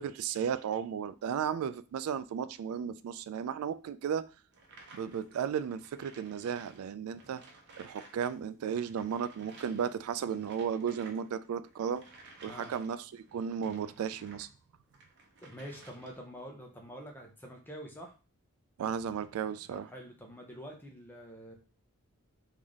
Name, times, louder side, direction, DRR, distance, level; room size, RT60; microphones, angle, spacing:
voice 1, 0.0-4.3 4.9-7.4 7.8-12.0 12.4-14.5 18.8-19.9, right 7 dB, 75° right, 0.3 m, -34 dB
sound 1, 4.5-8.3 8.6-14.5 14.9-16.3, right 3 dB, 55° right, 0.7 m, -56 dB
voice 2, 15.4-18.1 19.7-21.5, equal, 10° left, 0.7 m, -46 dB
3.4 x 2.7 x 3.5 m
head